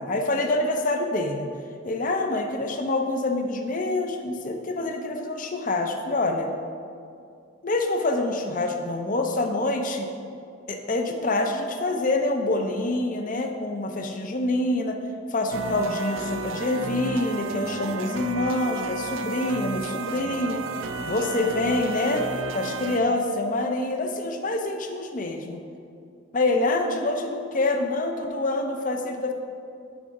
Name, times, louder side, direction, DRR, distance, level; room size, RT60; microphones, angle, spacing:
voice 1, 0.0-1.5 1.8-6.5 7.6-10.1 10.7-15.0 15.3-20.7 21.1-22.3 22.5-25.6 26.3-29.3, left 2 dB, 40° left, 4 dB, 0.6 m, -26 dB
sound 1, 15.5-23.0, right 3 dB, 80° right, 0.5 m, -32 dB
9.4 x 3.7 x 5.2 m, 2.4 s
head